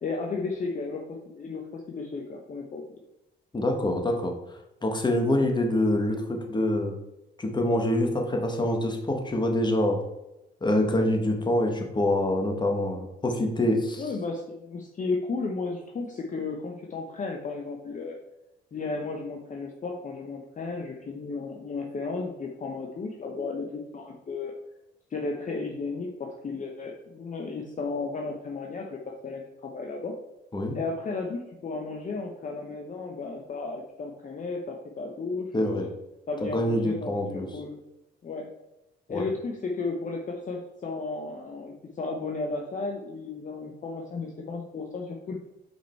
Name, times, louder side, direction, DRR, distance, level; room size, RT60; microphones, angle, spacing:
voice 1, 0.0-2.8 14.0-18.2 18.7-24.5 25.1-30.1 30.7-35.9 36.3-37.8 38.2-38.5 39.1-45.3, left 3 dB, 40° left, 1 dB, 0.9 m, -34 dB
voice 2, 3.5-4.3 4.8-6.9 7.4-10.0 10.6-14.0 30.5-30.8 35.5-35.9 36.4-37.5 39.1-39.2, left 1 dB, 20° left, 2 dB, 1.4 m, -25 dB
5.4 x 5.0 x 4.5 m, 0.93 s
cardioid pair, 90°, 20 cm